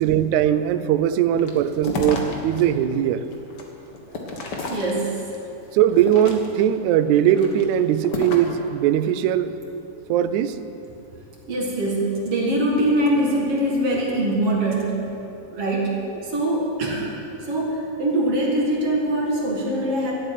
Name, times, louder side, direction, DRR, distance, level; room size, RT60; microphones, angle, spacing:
voice 1, 0.0-3.2 5.7-9.5 10.1-10.6, right 10 dB, 80° right, 12 dB, 1.7 m, -20 dB
sound 1, 1.4-2.6 3.1-5.4 5.9-6.7 7.3-8.6, left 3 dB, 65° left, 1.0 m, -32 dB
voice 2, 4.3-5.2 11.5-15.1 15.4-17.1 17.5-20.1, right 1 dB, 50° right, -2 dB, 2.5 m, -23 dB
13.0 x 7.8 x 9.3 m, 2.8 s
omnidirectional pair, 4.0 m